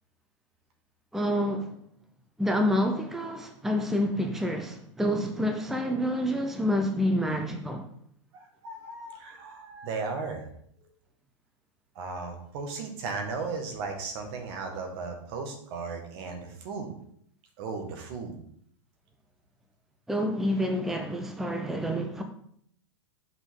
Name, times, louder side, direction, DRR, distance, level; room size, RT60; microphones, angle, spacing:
voice 1, 1.1-1.7 2.4-7.9 20.1-22.2, equal, ahead, 0.6 m, -28 dB
voice 2, 8.3-10.4 12.0-16.9 17.6-18.4, right 4 dB, 55° right, 1.8 m, -36 dB
6.0 x 5.8 x 3.8 m
hypercardioid pair, 120°, 16 cm